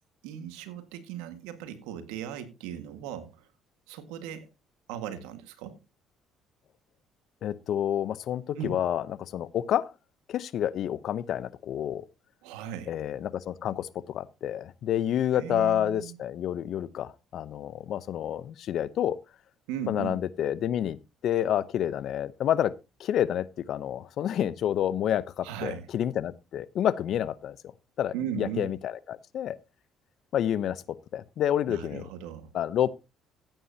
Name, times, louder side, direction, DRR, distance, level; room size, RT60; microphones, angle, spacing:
voice 1, 0.2-3.5 3.9-4.5 4.9-5.8 8.6-8.8 12.4-13.0 15.3-16.2 19.7-20.2 25.4-25.9 28.1-28.7 31.7-32.5, right 9 dB, 85° right, 1.7 m, -37 dB
voice 2, 7.4-9.9 10.3-12.0 12.9-19.2 19.9-21.0 21.2-22.7 23.0-27.6 28.0-29.6 30.3-30.8 31.1-32.1 32.5-32.9, left 10 dB, 65° left, 0.7 m, -29 dB
15.0 x 9.1 x 2.8 m
supercardioid pair, 75°, 0 cm